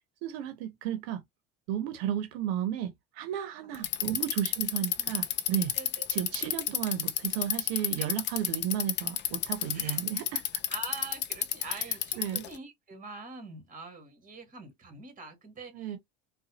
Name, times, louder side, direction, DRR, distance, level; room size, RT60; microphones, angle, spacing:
voice 1, 0.2-1.2 1.7-5.7 6.1-10.4 11.7-11.8 12.2-12.5 15.7-16.0, right 10 dB, 80° right, 0.8 m, -33 dB
voice 2, 3.6-4.1 5.0-5.1 5.7-6.4 8.0-8.2 9.7-10.0 10.7-16.0, right 3 dB, 25° right, 1.7 m, -45 dB
Bicycle, 3.7-12.6, left 10 dB, 35° left, 0.5 m, -30 dB
4.0 x 2.3 x 2.7 m
supercardioid pair, 100°, 31 cm